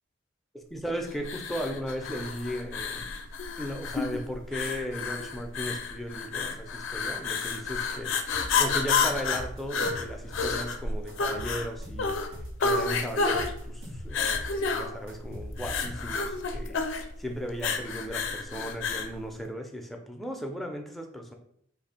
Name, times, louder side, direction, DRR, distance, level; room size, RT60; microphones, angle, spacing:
voice 1, 0.7-3.1 3.6-21.3, equal, ahead, 2 dB, 0.4 m, -36 dB
sound 1, 1.2-19.1, left 4 dB, 65° left, 0.4 m, -30 dB
sound 2, 8.3-8.7 9.1-10.7 11.1-12.7 13.1-14.6 14.8-16.3, equal, 70° right, 1.3 m, -42 dB
2.6 x 2.5 x 4.2 m, 0.67 s
head